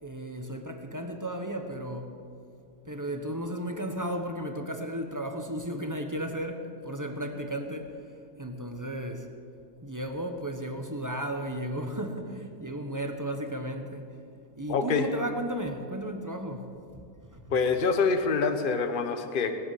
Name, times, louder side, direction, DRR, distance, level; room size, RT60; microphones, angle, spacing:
voice 1, 0.0-2.1 2.8-8.1 8.4-9.3 9.8-14.1 14.6-17.6, right 1 dB, 15° right, 5 dB, 0.8 m, -34 dB
voice 2, 14.7-15.0 17.5-19.5, left 5 dB, 35° left, 7 dB, 1.0 m, -26 dB
19.5 x 8.4 x 7.8 m, 2.3 s
omnidirectional pair, 1.7 m